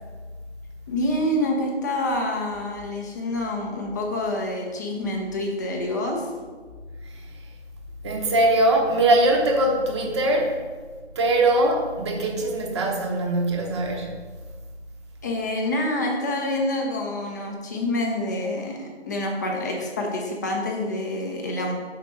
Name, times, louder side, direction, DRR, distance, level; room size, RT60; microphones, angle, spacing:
voice 1, 0.9-6.3 15.2-21.7, left 1 dB, 15° left, 0 dB, 0.6 m, -27 dB
voice 2, 8.0-10.6 11.1-14.1, right 1 dB, 25° right, 1 dB, 0.9 m, -21 dB
5.8 x 4.1 x 6.1 m, 1.5 s
figure-of-eight pair, 155°, 35 cm